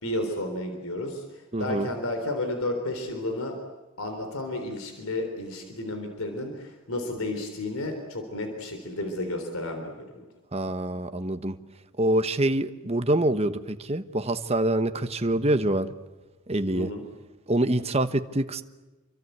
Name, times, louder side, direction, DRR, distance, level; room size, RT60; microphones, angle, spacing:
voice 1, 0.0-3.6 4.0-10.2 16.7-17.0, left 1 dB, 75° left, 5 dB, 3.7 m, -32 dB
voice 2, 1.5-1.9 10.5-11.6 12.0-15.9 16.5-16.9 17.5-18.6, right 1 dB, 30° right, 9 dB, 1.1 m, -25 dB
28.0 x 24.0 x 8.1 m, 1.2 s
head